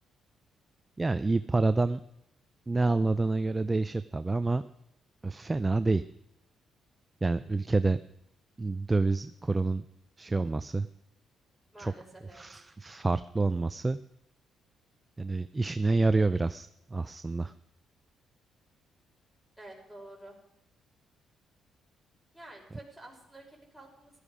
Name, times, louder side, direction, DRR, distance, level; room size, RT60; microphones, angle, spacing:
voice 1, 1.0-2.0 2.7-4.6 5.2-6.0 7.2-8.0 8.6-9.8 10.2-10.9 11.8-11.9 12.3-14.0 15.2-17.5, right 3 dB, 20° right, 12 dB, 0.5 m, -28 dB
voice 2, 11.7-12.4 19.6-20.3 22.3-24.1, right 1 dB, ahead, -2 dB, 5.7 m, -49 dB
16.0 x 13.5 x 5.0 m, 0.81 s
cardioid pair, 90°, 0 cm